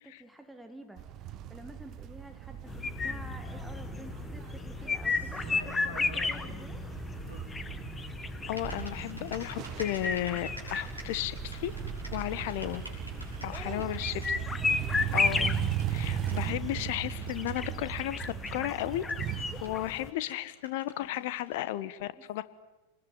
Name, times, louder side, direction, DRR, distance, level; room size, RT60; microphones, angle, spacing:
voice 1, 0.0-6.8 13.5-13.9 22.0-22.4, right 1 dB, 5° right, 5 dB, 2.0 m, -49 dB
sound 1, 1.0-19.6, right 10 dB, 35° right, 1.5 m, -38 dB
sound 2, 2.7-20.1, left 4 dB, 15° left, 1.4 m, -35 dB
Typing, 3.6-21.7, equal, 85° right, 6.0 m, -51 dB
voice 2, 8.5-11.7 12.1-12.8 13.4-14.4 14.7-15.6 15.9-19.0 19.3-22.4, left 14 dB, 50° left, 14 dB, 1.4 m, -34 dB
29.0 x 20.0 x 9.4 m, 1.1 s
figure-of-eight pair, 90°, 0 cm